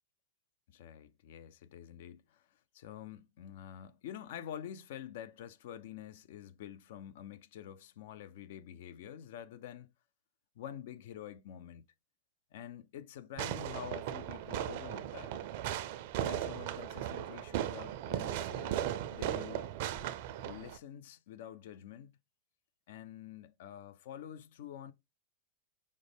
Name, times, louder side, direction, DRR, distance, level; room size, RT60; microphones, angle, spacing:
voice 1, 0.7-9.9 10.6-11.9 12.5-15.4 16.2-19.7 20.4-22.2 22.9-24.9, left 10 dB, 65° left, 0.4 m, -47 dB
Fireworks, 13.4-20.8, right 11 dB, 60° right, 0.4 m, -37 dB
5.0 x 2.1 x 3.3 m
hypercardioid pair, 100°, 0 cm